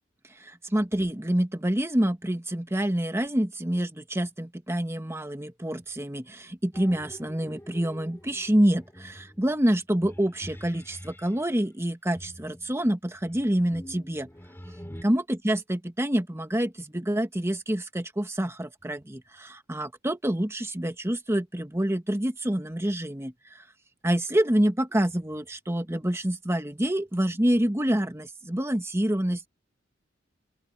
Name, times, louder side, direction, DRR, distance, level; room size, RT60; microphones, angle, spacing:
voice 1, 0.4-14.3 14.7-23.6 24.0-29.5, right 1 dB, 15° right, 1.4 m, -27 dB
sound 1, 6.7-11.5 12.1-15.0, equal, 10° left, 3.5 m, -46 dB
open air
head